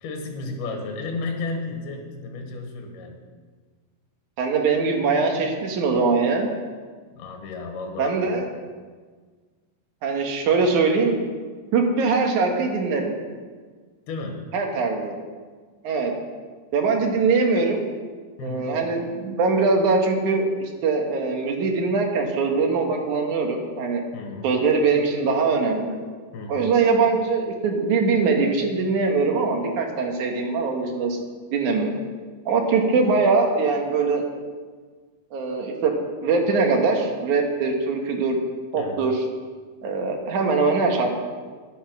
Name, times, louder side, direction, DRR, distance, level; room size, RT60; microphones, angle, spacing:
voice 1, 0.0-3.2 7.1-8.2 14.1-14.5 18.4-18.8 24.1-24.5 26.3-26.7 38.8-39.0, left 3 dB, 80° left, 3 dB, 3.4 m, -33 dB
voice 2, 4.4-6.5 8.0-8.5 10.0-11.2 11.7-13.1 14.5-15.1 15.8-16.1 16.7-17.8 18.4-20.5 20.8-24.0 24.4-26.0 26.5-31.2 31.5-32.0 32.5-34.3 35.3-35.9 36.2-38.4 38.7-39.2 39.8-41.1, right 4 dB, 60° right, 2 dB, 2.5 m, -22 dB
11.0 x 9.9 x 6.0 m, 1.5 s
omnidirectional pair, 4.4 m